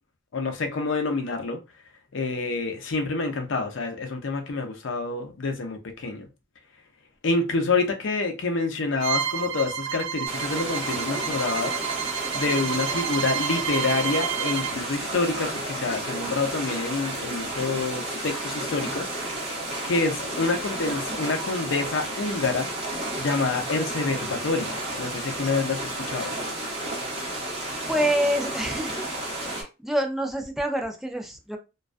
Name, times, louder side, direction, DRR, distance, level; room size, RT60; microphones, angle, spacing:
voice 1, 0.3-1.6 2.1-6.3 7.2-11.8 12.3-19.1 19.8-22.7 23.2-26.3, left 3 dB, 75° left, 0.5 m, -27 dB
Bowed string instrument, 9.0-14.8, right 9 dB, 80° right, 0.5 m, -30 dB
sound 1, 10.3-29.6, right 1 dB, 30° right, 0.8 m, -32 dB
voice 2, 27.9-29.0 29.5-31.6, equal, ahead, 0.3 m, -27 dB
2.3 x 2.2 x 2.4 m
head